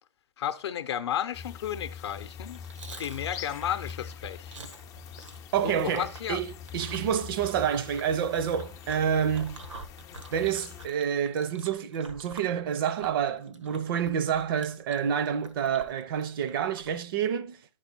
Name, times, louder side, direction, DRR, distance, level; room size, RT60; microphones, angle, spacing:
voice 1, 0.4-2.6 2.9-4.6 5.6-6.4, left 10 dB, 60° left, 0.7 m, -33 dB
sound 1, 1.3-10.9, left 7 dB, 20° left, 0.4 m, -43 dB
Chewing mastication, 2.2-17.0, right 3 dB, 85° right, 1.2 m, -48 dB
voice 2, 5.5-9.6 10.3-17.6, right 8 dB, 50° right, 0.6 m, -28 dB
10.5 x 4.8 x 4.3 m
hypercardioid pair, 120°, 15 cm